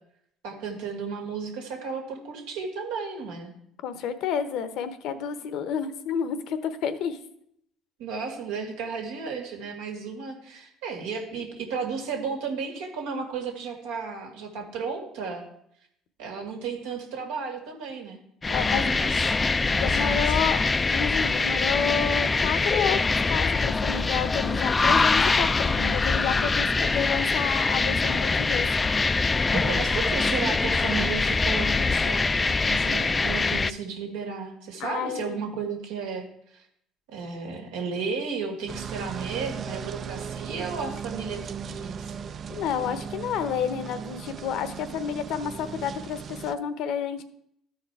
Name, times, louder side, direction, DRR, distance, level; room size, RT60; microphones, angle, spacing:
voice 1, 0.4-3.5 8.0-15.4 16.2-18.2 18.4-19.2 19.7-20.5 29.5-36.3 36.5-36.6 37.1-42.1, right 5 dB, 90° right, 1 dB, 2.1 m, -34 dB
voice 2, 3.8-7.2 18.5-18.9 19.8-23.0 23.3-28.7 34.8-35.4 42.5-47.2, left 8 dB, 70° left, 12 dB, 0.9 m, -30 dB
sound 1, 18.4-33.7, left 4 dB, 25° left, 0.3 m, -24 dB
sound 2, 38.7-46.6, right 6 dB, 50° right, 0.4 m, -37 dB
13.0 x 4.6 x 4.7 m, 0.72 s
supercardioid pair, 85°, 0 cm